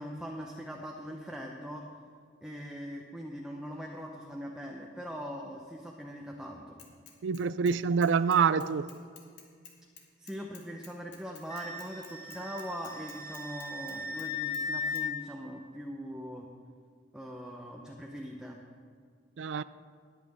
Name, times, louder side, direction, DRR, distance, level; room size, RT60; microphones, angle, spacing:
voice 1, 0.0-1.8 2.4-6.8 10.2-16.5 17.1-18.6, equal, 5° right, 0.8 m, -41 dB
Bicycle / Mechanisms, 6.8-7.8 8.0-14.3 14.5-14.6 15.0-15.1, left 7 dB, 65° left, 1.8 m, -52 dB
voice 2, 7.2-8.9 19.4-19.6, right 6 dB, 90° right, 0.4 m, -26 dB
Wind instrument woodwind instrument, 11.5-15.0, left 3 dB, 20° left, 1.7 m, -37 dB
20.0 x 8.5 x 3.6 m
head